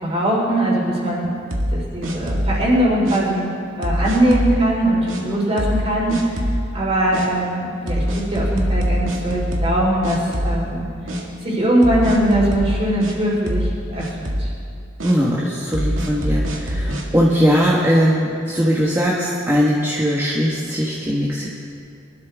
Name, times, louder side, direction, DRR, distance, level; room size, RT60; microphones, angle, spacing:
voice 1, 0.0-1.3 1.7-3.5 3.8-6.5 6.7-10.9 11.4-14.5, right 1 dB, 30° right, -4 dB, 4.0 m, -20 dB
sound 1, 1.5-2.6 3.1-3.2 3.8-4.6 5.1-5.2 5.6-5.8 6.1-6.6 7.1-7.3 7.9-9.8 10.0-10.8 11.1-11.2 11.8-13.1 13.5-13.7 14.0-14.5 15.0-15.1 15.7-17.1, equal, 85° right, 2.0 m, -23 dB
voice 2, 15.0-21.5, equal, 15° right, -6 dB, 1.3 m, -19 dB
24.0 x 13.0 x 3.5 m, 2.4 s
head